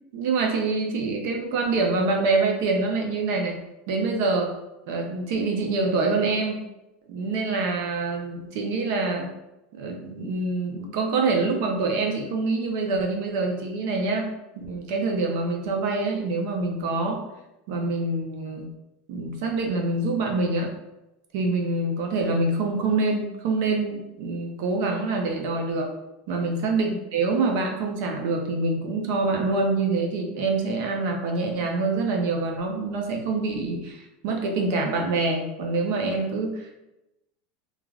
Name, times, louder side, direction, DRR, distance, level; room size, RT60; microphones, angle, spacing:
voice 1, 0.1-3.6 3.9-4.5 4.9-6.6 7.1-9.3 9.7-14.3 14.6-17.3 17.7-18.7 19.1-20.7 21.3-25.9 26.3-36.7, right 3 dB, 60° right, 2 dB, 0.5 m, -25 dB
2.3 x 2.3 x 3.2 m, 0.93 s
supercardioid pair, 155°, 0 cm